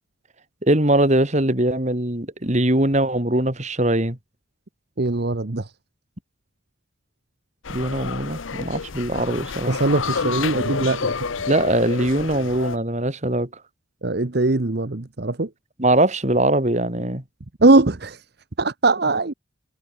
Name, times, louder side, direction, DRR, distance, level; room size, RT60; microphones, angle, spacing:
voice 1, 0.6-4.2 7.7-9.8 11.5-13.5 15.8-17.2, right 1 dB, 35° right, 2.7 m, -21 dB
voice 2, 5.0-5.7 9.7-11.3 14.0-15.5 17.6-18.2 18.6-19.3, right 2 dB, 55° right, 1.0 m, -20 dB
sound 1, 7.6-12.8, left 5 dB, 85° left, 0.9 m, -29 dB
head